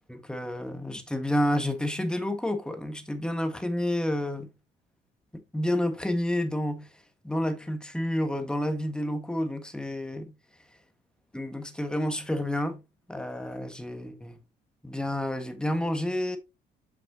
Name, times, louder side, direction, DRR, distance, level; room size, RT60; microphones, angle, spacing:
voice 1, 0.1-4.5 5.5-6.9 7.2-10.3 11.3-12.8 13.1-14.4 14.8-16.4, left 1 dB, 5° left, 1.5 m, -29 dB
7.8 x 6.0 x 2.8 m
cardioid pair, 110°, 17 cm